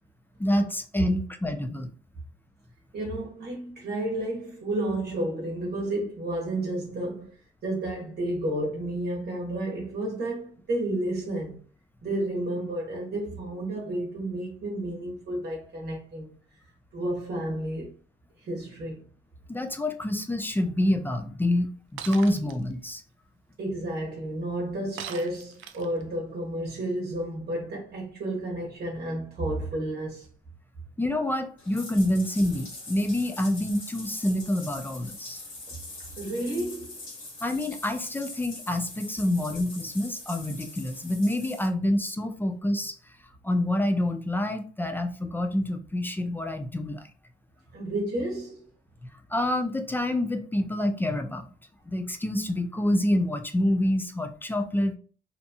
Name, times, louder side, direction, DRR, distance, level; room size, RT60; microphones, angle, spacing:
voice 1, 0.4-1.9 19.5-23.0 31.0-35.4 37.4-43.0 43.4-47.1 49.3-51.5 51.9-55.0, left 1 dB, 10° left, 0.3 m, -27 dB
voice 2, 2.9-7.3 7.6-11.6 12.0-16.4 16.9-18.0 18.4-19.1 23.6-30.3 35.7-35.8 36.2-37.0 47.7-48.7, right 1 dB, 55° right, 0.9 m, -31 dB
Shatter, 22.0-22.6 25.0-26.0, right 8 dB, 80° right, 0.4 m, -39 dB
Bathtub (filling or washing), 31.6-41.7, left 2 dB, 80° left, 1.3 m, -43 dB
2.7 x 2.2 x 2.7 m
cardioid pair, 90°, 20 cm